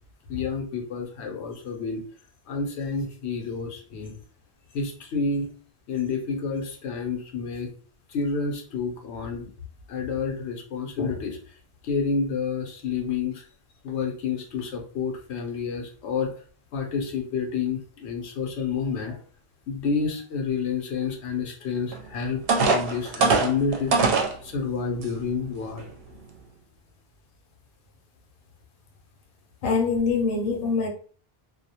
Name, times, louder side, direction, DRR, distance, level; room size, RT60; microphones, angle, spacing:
voice 1, 0.3-2.0 2.5-4.1 4.7-5.5 5.9-7.7 8.1-9.5 9.9-11.4 11.8-13.5 13.8-16.3 16.7-19.2 19.7-25.8, left 5 dB, 85° left, 0.9 m, -29 dB
sound 1, 21.9-22.0 22.5-24.3 25.0-25.1 25.6-25.8, right 4 dB, 65° right, 0.7 m, -21 dB
voice 2, 29.6-30.9, left 4 dB, 60° left, 0.7 m, -24 dB
2.3 x 2.0 x 2.7 m
omnidirectional pair, 1.1 m